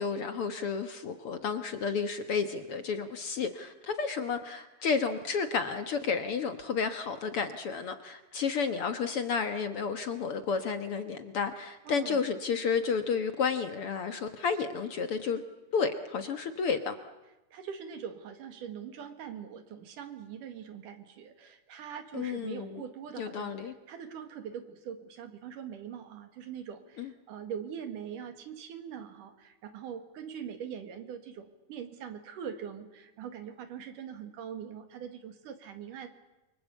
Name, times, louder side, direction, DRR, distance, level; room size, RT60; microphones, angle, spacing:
voice 1, 0.0-15.4 15.7-16.9 22.1-22.8 23.2-23.7 27.0-27.1, left 5 dB, 55° left, 8 dB, 1.7 m, -31 dB
voice 2, 11.9-12.2 17.5-23.5 23.9-36.1, right 8 dB, 80° right, 8 dB, 3.5 m, -42 dB
29.0 x 24.0 x 8.3 m, 1.0 s
omnidirectional pair, 3.7 m